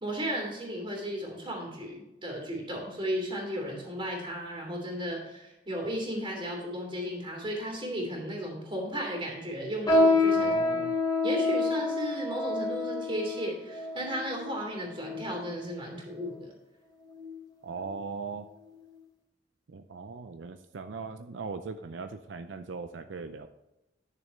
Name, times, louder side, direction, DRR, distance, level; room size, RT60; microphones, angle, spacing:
voice 1, 0.0-10.8 11.2-16.5, equal, 30° right, 0 dB, 2.9 m, -35 dB
sound 1, 9.9-15.5 16.2-16.3 17.1-17.4 17.8-17.9 18.6-18.7, left 2 dB, 20° left, 2.7 m, -28 dB
voice 2, 10.3-10.9 17.6-18.5 19.7-23.5, right 4 dB, 80° right, 8 dB, 0.5 m, -39 dB
10.5 x 6.8 x 3.2 m, 0.94 s
head